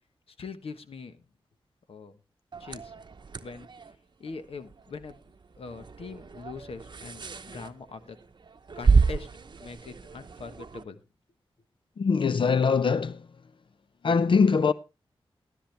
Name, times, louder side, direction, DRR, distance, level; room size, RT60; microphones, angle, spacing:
voice 1, 0.3-1.2 1.9-2.2 2.6-2.9 3.4-3.7 4.2-5.2 5.6-8.2 8.7-9.3 9.6-11.0, left 4 dB, 80° left, 1.2 m, -42 dB
sound 1, 2.5-10.8, right 5 dB, 50° right, 0.9 m, -30 dB
voice 2, 12.0-13.3 14.0-14.7, left 5 dB, 60° left, 0.5 m, -22 dB
13.5 x 12.5 x 3.3 m
wide cardioid pair, 75°, 10 cm